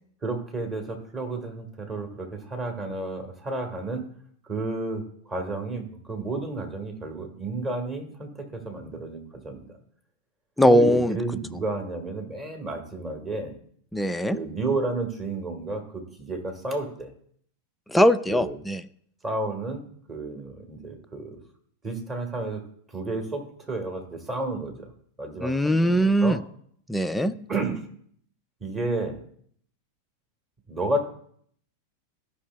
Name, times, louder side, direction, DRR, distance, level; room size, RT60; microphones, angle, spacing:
voice 1, 0.2-4.1 4.4-9.8 10.7-13.6 14.3-17.1 18.3-18.6 19.2-19.8 20.1-21.4 21.8-22.6 22.9-24.9 25.2-26.4 27.5-27.8 28.6-29.2 30.7-31.1, right 2 dB, 20° right, 4 dB, 1.6 m, -31 dB
voice 2, 10.6-11.2 13.9-14.4 17.9-18.8 25.4-26.4 26.9-27.3, equal, 5° left, 9 dB, 0.3 m, -20 dB
13.5 x 5.6 x 2.2 m, 0.63 s
figure-of-eight pair, 90°, 0 cm